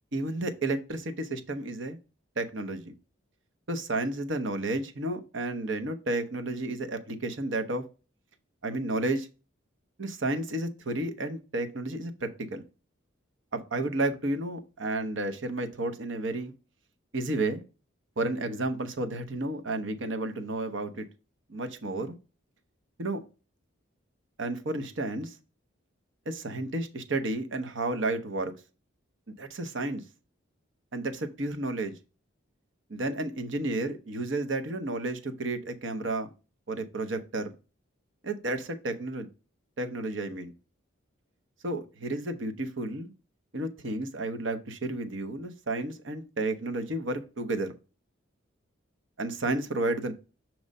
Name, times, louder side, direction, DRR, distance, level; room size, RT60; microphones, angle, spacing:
voice 1, 0.1-2.0 2.4-2.9 3.7-7.8 8.6-9.3 10.0-12.6 13.5-16.5 17.1-17.6 18.2-21.1 21.5-22.1 23.0-23.2 24.4-25.3 26.3-28.5 29.4-30.0 30.9-31.9 32.9-36.3 36.7-37.5 38.2-39.3 39.8-40.5 41.6-43.1 43.5-47.8 49.2-50.1, right 2 dB, 65° right, 7 dB, 0.8 m, -32 dB
6.3 x 3.1 x 5.3 m, 0.32 s
head